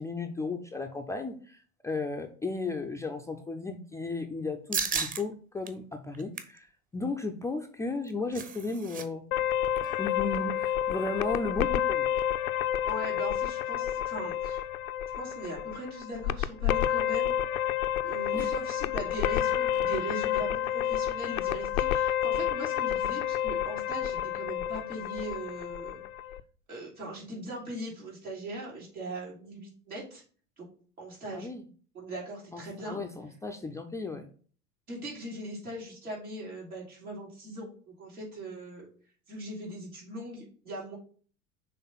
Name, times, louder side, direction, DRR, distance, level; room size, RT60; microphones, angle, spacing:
voice 1, 0.0-6.7 6.9-9.2 10.0-12.1 18.3-18.5 31.3-31.6 32.5-34.3, left 3 dB, 10° left, 4 dB, 0.3 m, -34 dB
sound 1, 4.7-5.2 5.6-5.7 6.1-6.6 7.9-9.0 9.3-9.4 9.8-10.0, right 5 dB, 20° right, 0.7 m, -34 dB
sound 2, 9.3-26.4, left 10 dB, 75° left, 0.5 m, -30 dB
voice 2, 12.8-14.6 15.2-17.3 18.0-26.0 26.7-30.2 30.6-30.7 31.0-31.5 31.9-33.0 34.9-37.7 38.0-38.9 39.3-41.0, right 1 dB, 85° right, -5 dB, 3.6 m, -40 dB
6.0 x 3.5 x 5.4 m, 0.42 s
figure-of-eight pair, 80°, 42 cm